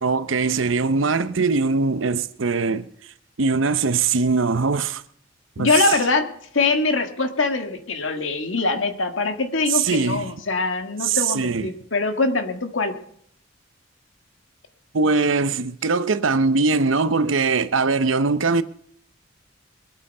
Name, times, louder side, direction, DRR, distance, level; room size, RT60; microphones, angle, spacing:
voice 1, 0.0-2.9 3.4-5.0 5.6-5.9 9.7-10.3 11.0-11.7 14.9-18.6, right 4 dB, 80° right, 0.8 m, -21 dB
voice 2, 5.6-6.3 6.5-13.0, left 3 dB, 80° left, 1.7 m, -23 dB
21.5 x 8.8 x 5.5 m
head